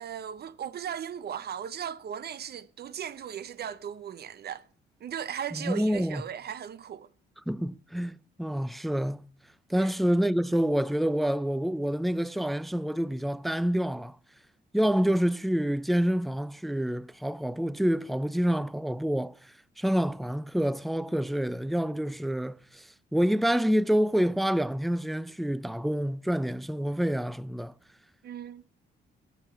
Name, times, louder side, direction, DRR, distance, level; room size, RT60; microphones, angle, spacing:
voice 1, 0.0-4.6 5.0-7.1 9.7-9.9 28.2-28.6, right 8 dB, 55° right, 0.6 m, -37 dB
voice 2, 5.5-6.2 7.5-9.3 9.7-14.2 14.7-19.4 19.8-27.7, equal, ahead, 0.4 m, -27 dB
8.8 x 8.0 x 5.7 m
cardioid pair, 90°, 20 cm